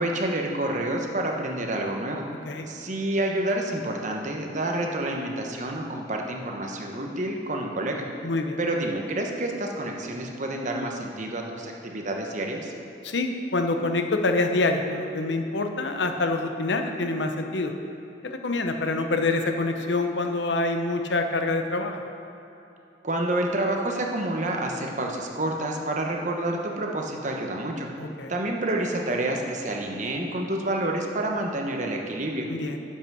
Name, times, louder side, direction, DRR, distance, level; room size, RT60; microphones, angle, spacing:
voice 1, 0.0-2.3 2.7-8.0 8.6-12.7 23.0-27.9 28.3-32.5, right 1 dB, 45° right, 1 dB, 1.0 m, -28 dB
voice 2, 8.2-8.6 13.0-17.7 18.2-22.0 28.0-28.3 32.5-32.8, left 2 dB, 90° left, 5 dB, 0.8 m, -26 dB
10.0 x 5.6 x 6.2 m, 3.0 s
head